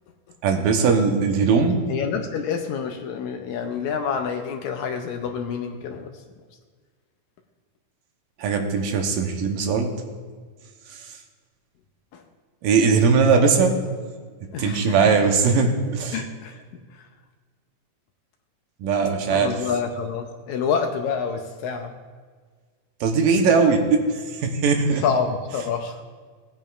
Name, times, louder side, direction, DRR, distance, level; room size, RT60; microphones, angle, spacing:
voice 1, 0.4-1.8 8.4-9.9 11.0-11.1 12.6-13.7 14.6-16.2 18.8-19.5 23.0-25.0, right 5 dB, 90° right, 3 dB, 2.7 m, -20 dB
voice 2, 1.9-6.1 12.1-12.2 14.5-15.0 15.2-15.3 16.1-16.6 16.9-17.0 19.3-21.9 24.9-26.0, left 6 dB, 75° left, 5 dB, 1.9 m, -27 dB
18.0 x 8.9 x 2.5 m, 1.6 s
omnidirectional pair, 3.8 m